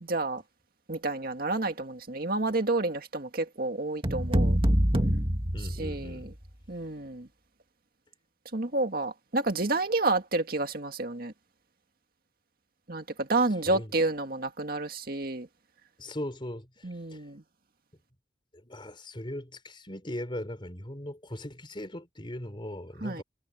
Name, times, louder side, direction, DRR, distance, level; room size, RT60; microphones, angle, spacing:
voice 1, 0.0-0.4 0.9-4.6 5.8-6.3 6.7-7.3 8.5-11.3 12.9-15.5 16.8-17.4 23.0-23.2, right 2 dB, 55° right, 2.0 m, -30 dB
sound 1, 4.0-6.3, equal, 30° right, 2.2 m, -25 dB
voice 2, 5.5-6.3 13.7-13.9 16.0-17.2 18.5-23.2, left 1 dB, 30° left, 4.1 m, -39 dB
head